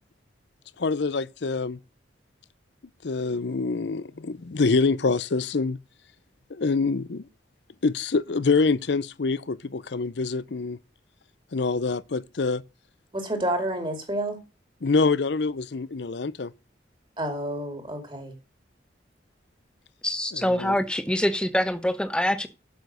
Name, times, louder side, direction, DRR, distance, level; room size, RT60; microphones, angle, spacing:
voice 1, 0.8-1.8 3.0-5.8 6.5-7.2 7.8-10.8 11.5-12.6 14.8-16.5 20.3-20.8, left 4 dB, 70° left, 0.6 m, -25 dB
voice 2, 13.1-14.4 17.2-18.3, right 1 dB, 25° right, 2.5 m, -29 dB
voice 3, 20.0-22.5, left 1 dB, 5° left, 0.9 m, -25 dB
7.8 x 7.0 x 6.8 m
head